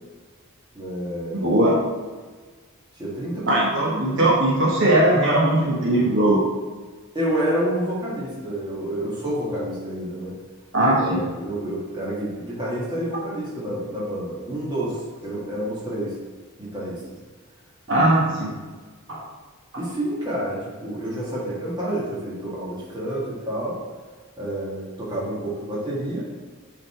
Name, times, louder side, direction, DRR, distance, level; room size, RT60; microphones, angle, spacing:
voice 1, 0.7-1.6 3.0-4.3 7.1-10.4 10.9-16.2 16.6-17.0 17.9-18.6 19.8-23.8 24.4-26.3, right 1 dB, 20° right, -6 dB, 1.8 m, -29 dB
voice 2, 1.4-1.7 3.5-6.4 10.7-11.2 17.9-18.5 19.1-19.2, right 1 dB, 55° right, -5 dB, 1.4 m, -19 dB
8.0 x 4.2 x 4.4 m, 1.4 s
head